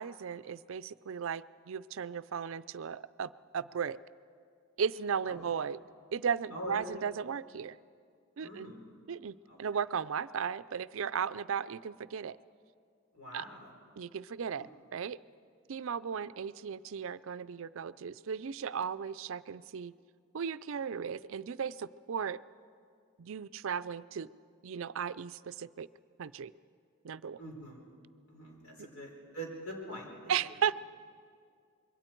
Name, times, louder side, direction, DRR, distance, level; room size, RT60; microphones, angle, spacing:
voice 1, 0.0-4.0 4.8-5.8 6.1-7.8 8.4-8.7 9.1-12.4 13.3-13.4 14.0-15.2 15.7-19.9 20.3-22.4 23.2-24.3 24.6-25.9 26.2-26.5 27.0-27.4 30.3-30.8, right 7 dB, 60° right, 16 dB, 0.4 m, -36 dB
voice 2, 8.4-8.8 9.5-9.6 13.1-13.7 14.5-14.7 27.3-27.8 28.3-30.4, right 1 dB, 85° left, -1 dB, 4.6 m, -44 dB
26.0 x 22.5 x 4.5 m, 2.3 s
head